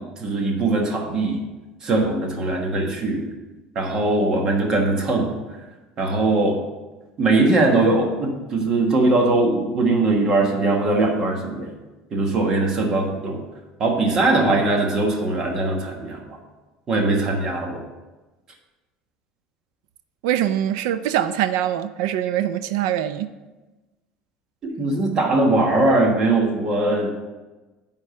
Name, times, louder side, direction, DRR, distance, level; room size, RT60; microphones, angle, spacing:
voice 1, 0.0-1.4 1.8-3.2 3.7-5.3 6.0-6.6 7.2-11.7 12.1-13.4 13.8-16.4 16.9-17.8 24.6-27.2, right 2 dB, 25° right, 2 dB, 1.3 m, -21 dB
voice 2, 20.2-23.3, right 11 dB, 80° right, 12 dB, 0.4 m, -23 dB
9.7 x 3.7 x 6.7 m, 1.1 s
cardioid pair, 170°, 2 cm